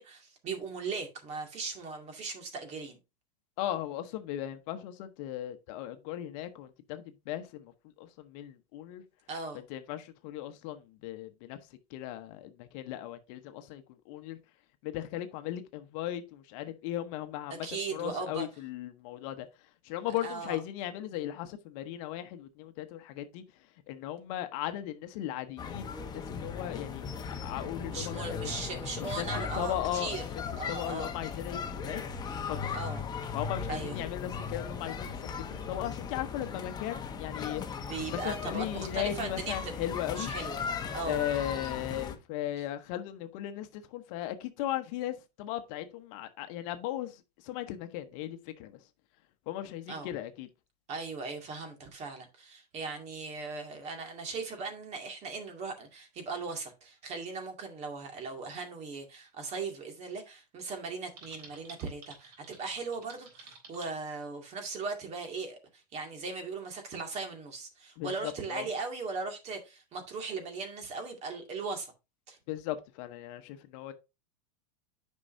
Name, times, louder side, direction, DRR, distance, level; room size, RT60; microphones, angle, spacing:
voice 1, 0.0-3.0 9.3-9.6 17.6-18.5 20.2-20.6 27.9-30.2 30.6-31.1 32.7-33.0 33.7-34.0 37.9-39.7 40.2-40.6 40.9-41.2 49.9-50.1 50.9-71.9 72.3-72.4, right 4 dB, 30° right, 2.2 m, -38 dB
voice 2, 3.6-9.0 9.7-11.6 11.9-14.4 14.8-23.4 23.9-28.5 29.0-29.3 29.5-30.3 30.7-32.0 32.5-32.7 33.3-37.6 38.1-40.3 41.1-48.8 49.5-50.5 68.0-68.7 72.5-73.9, left 12 dB, 55° left, 1.0 m, -37 dB
sound 1, 25.6-42.1, left 6 dB, 20° left, 1.1 m, -38 dB
Typing, 61.2-63.9, right 4 dB, 85° right, 3.5 m, -51 dB
9.7 x 5.5 x 2.6 m
supercardioid pair, 140°, 21 cm